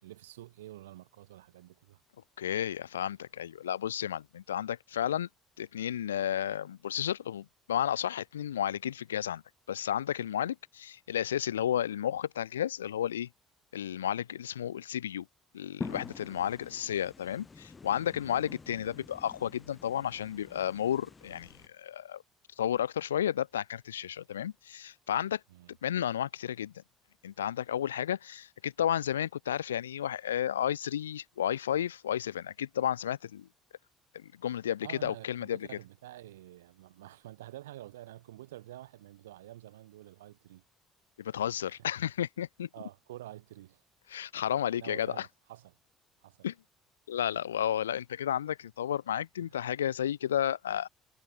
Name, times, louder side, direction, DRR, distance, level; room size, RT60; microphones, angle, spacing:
voice 1, 0.0-2.0 16.3-16.5 25.5-25.7 34.8-40.6 41.7-41.9 42.7-43.8 44.8-45.8 46.2-46.5 49.4-49.5, right 14 dB, 75° right, 4.7 m, -48 dB
voice 2, 2.4-5.3 5.6-9.4 9.7-13.3 13.7-15.2 15.5-22.2 22.6-25.4 25.8-26.7 27.2-33.5 34.1-35.7 41.2-42.7 44.1-45.3 46.4-46.5 47.1-50.9, left 10 dB, 80° left, 3.0 m, -32 dB
sound 1, 15.8-21.7, left 4 dB, 25° left, 3.5 m, -46 dB
figure-of-eight pair, 50°, 0 cm